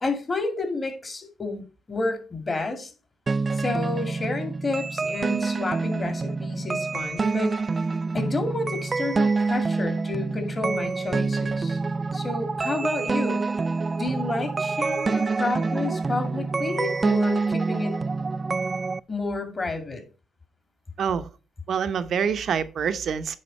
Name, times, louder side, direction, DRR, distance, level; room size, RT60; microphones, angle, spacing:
voice 1, 0.0-2.9 3.6-7.6 8.1-11.8 12.1-13.4 14.0-18.0 19.1-20.0, left 3 dB, 30° left, 2.4 m, -30 dB
sound 1, 3.3-19.0, right 4 dB, 30° right, 0.3 m, -26 dB
voice 2, 21.7-23.3, right 7 dB, 60° right, 0.8 m, -26 dB
9.8 x 4.0 x 5.3 m
cardioid pair, 90°, 0 cm